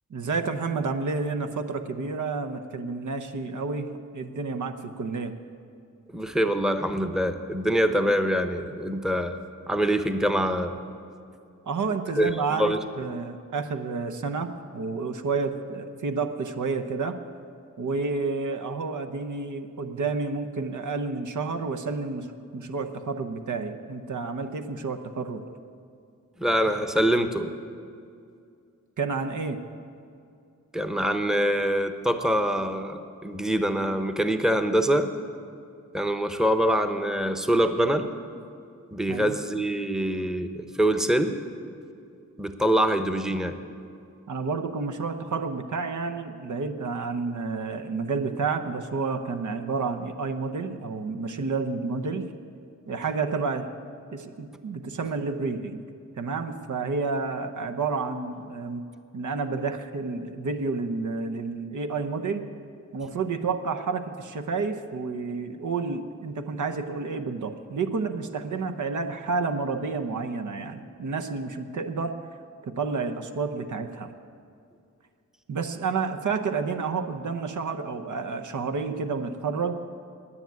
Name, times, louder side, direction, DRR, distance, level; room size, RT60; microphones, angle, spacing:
voice 1, 0.1-5.3 11.6-17.2 17.8-22.3 22.5-25.4 29.0-29.6 39.1-39.3 44.3-52.3 52.9-53.7 54.1-55.8 56.2-58.8 59.1-62.5 62.9-72.1 72.6-74.1 75.5-79.7, right 4 dB, 65° right, 7 dB, 0.8 m, -30 dB
voice 2, 6.1-9.4 9.7-10.8 12.2-12.8 26.4-27.5 30.7-35.1 35.9-38.1 38.9-41.4 42.4-43.6, equal, ahead, 9 dB, 0.8 m, -24 dB
9.9 x 9.3 x 9.4 m, 2.4 s
cardioid pair, 55°, 32 cm